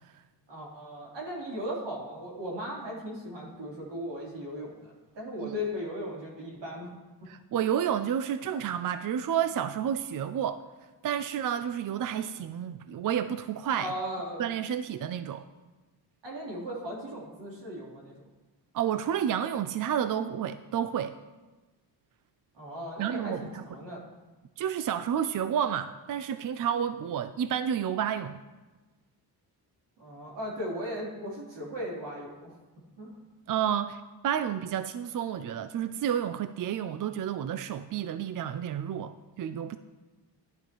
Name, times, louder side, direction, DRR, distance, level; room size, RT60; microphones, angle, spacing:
voice 1, 0.5-6.9 7.2-7.3 13.8-14.5 16.2-18.1 22.5-24.0 30.0-32.5 33.0-33.2, equal, 85° right, -4 dB, 3.8 m, -37 dB
voice 2, 7.3-10.6 11.0-13.9 14.4-15.4 18.7-21.1 23.0-23.6 24.6-28.4 33.5-39.8, right 9 dB, 50° right, 11 dB, 0.5 m, -30 dB
14.0 x 11.5 x 3.1 m, 1.2 s
wide cardioid pair, 130°, 41 cm